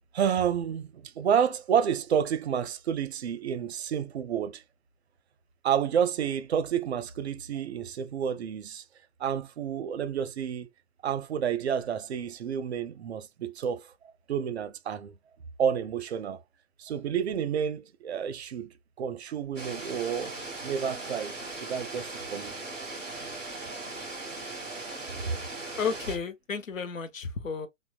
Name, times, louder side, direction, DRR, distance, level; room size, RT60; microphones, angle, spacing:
voice 1, 0.1-4.6 5.6-8.8 9.2-10.7 11.0-13.9 14.3-15.1 15.6-16.4 16.8-18.7 19.0-20.4 20.6-22.6 25.2-25.4, right 8 dB, 55° right, 0.5 m, -30 dB
sound 1, 19.5-26.2, right 2 dB, 5° right, 0.3 m, -39 dB
voice 2, 25.8-27.7, left 5 dB, 80° left, 0.7 m, -32 dB
3.0 x 2.1 x 2.5 m
figure-of-eight pair, 115°, 39 cm